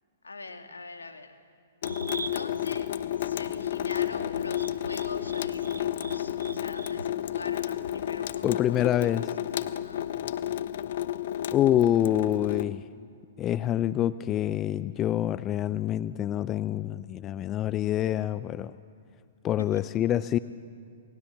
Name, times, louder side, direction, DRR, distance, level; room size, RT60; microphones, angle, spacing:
voice 1, 0.2-1.4 2.3-2.9 3.2-9.3 9.6-10.1 19.6-19.8, left 3 dB, 80° left, 6 dB, 2.3 m, -43 dB
Water tap faucet / Sink (filling or washing) / Drip, 1.8-12.6, left 11 dB, 55° left, 0.9 m, -31 dB
sound 1, 1.8-7.0, right 3 dB, 80° right, 0.6 m, -43 dB
voice 2, 8.4-9.3 11.5-12.8 13.4-18.7 19.4-20.4, left 12 dB, 25° left, 16 dB, 0.6 m, -26 dB
29.0 x 19.5 x 7.4 m, 2.4 s
figure-of-eight pair, 115°, 0 cm